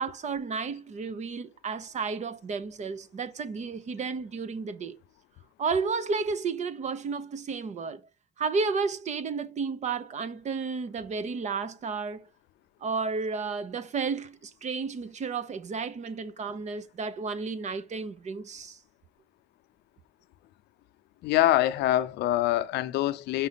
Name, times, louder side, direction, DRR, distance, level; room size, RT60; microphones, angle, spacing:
voice 1, 0.0-5.0 5.6-8.0 8.4-12.3 12.8-18.8, right 5 dB, 45° right, 1.1 m, -32 dB
voice 2, 21.2-23.5, left 14 dB, 80° left, 0.7 m, -24 dB
6.0 x 5.4 x 4.0 m
cardioid pair, 110°, 17 cm